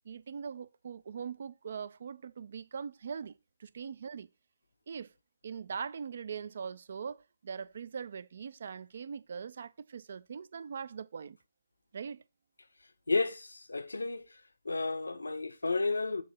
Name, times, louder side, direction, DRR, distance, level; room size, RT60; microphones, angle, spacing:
voice 1, 0.1-3.3 3.6-4.3 4.9-5.1 5.4-11.4 11.9-12.2, right 6 dB, 50° right, 0.3 m, -41 dB
voice 2, 13.1-14.2 14.6-16.2, left 3 dB, 70° left, 0.7 m, -32 dB
7.4 x 2.8 x 5.3 m
figure-of-eight pair, 140°, 0 cm